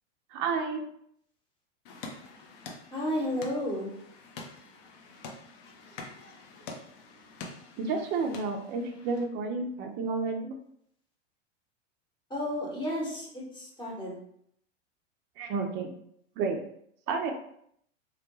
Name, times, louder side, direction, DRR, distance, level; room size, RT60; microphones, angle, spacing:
voice 1, 0.3-0.8 7.8-10.5 15.4-15.9 16.4-16.6 17.1-17.3, right 4 dB, 30° right, 4 dB, 0.4 m, -31 dB
sound 1, 1.9-9.2, left 3 dB, 45° left, 0.5 m, -46 dB
voice 2, 2.9-3.9 12.3-14.2, left 1 dB, 15° left, -4 dB, 0.9 m, -32 dB
2.3 x 2.1 x 3.0 m, 0.70 s
hypercardioid pair, 105°, 36 cm